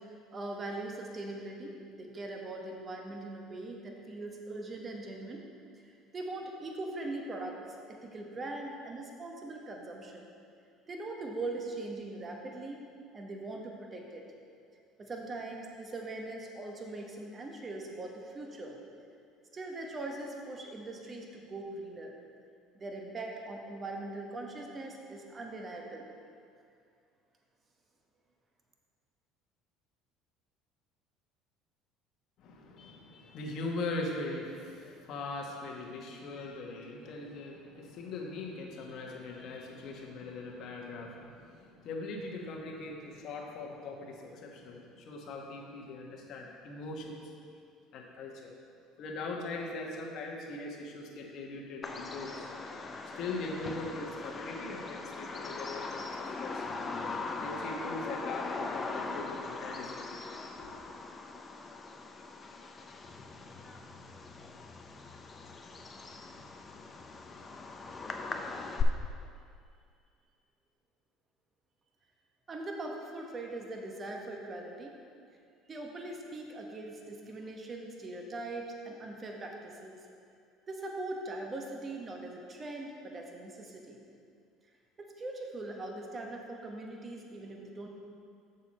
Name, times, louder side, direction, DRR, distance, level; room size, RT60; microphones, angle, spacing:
voice 1, 0.0-5.4 5.8-7.6 7.9-10.3 10.9-12.8 13.1-14.3 15.0-18.8 19.5-22.1 22.7-26.1 72.5-75.0 75.7-80.0 80.7-84.0 85.0-87.9, right 2 dB, 35° right, 1 dB, 1.3 m, -41 dB
voice 2, 32.4-47.2 47.9-48.5 49.0-52.5 53.0-56.7 57.4-60.0 60.6-60.8, left 2 dB, 60° left, -1 dB, 1.3 m, -40 dB
Bird vocalization bird call bird song, 51.8-68.8, left 4 dB, 30° left, 0.7 m, -40 dB
7.2 x 6.6 x 4.3 m, 2.3 s
hypercardioid pair, 75°, 0 cm